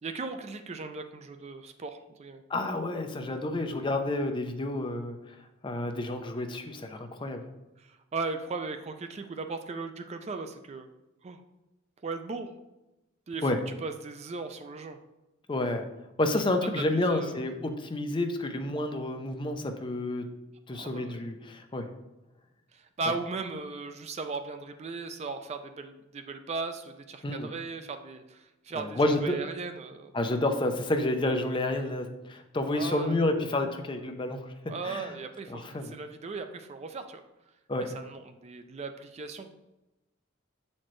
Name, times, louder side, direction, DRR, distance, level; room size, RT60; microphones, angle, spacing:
voice 1, 0.0-2.4 7.8-10.9 11.2-11.4 12.0-12.5 13.3-15.0 16.8-17.5 20.7-21.2 22.7-30.1 32.7-33.2 34.7-37.2 37.9-39.5, right 4 dB, 35° right, 8 dB, 0.3 m, -37 dB
voice 2, 2.5-5.2 5.6-7.4 13.4-13.6 15.5-15.9 16.2-20.3 20.7-21.9 27.2-27.5 28.7-29.4 30.1-34.4 34.8-35.1 35.5-35.9 37.7-38.0, left 1 dB, 25° left, 6 dB, 0.5 m, -29 dB
7.5 x 4.3 x 3.1 m, 0.98 s
head